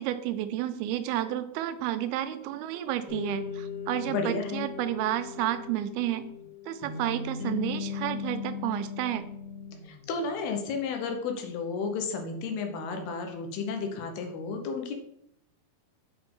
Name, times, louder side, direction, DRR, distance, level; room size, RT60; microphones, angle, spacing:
voice 1, 0.0-6.3 6.7-9.3, right 12 dB, 85° right, 11 dB, 2.5 m, -31 dB
sound 1, 3.1-10.4, left 6 dB, 60° left, 3.1 m, -38 dB
voice 2, 4.1-4.7 9.8-14.9, left 4 dB, 85° left, 5 dB, 3.0 m, -32 dB
7.7 x 5.2 x 3.7 m, 0.73 s
omnidirectional pair, 4.4 m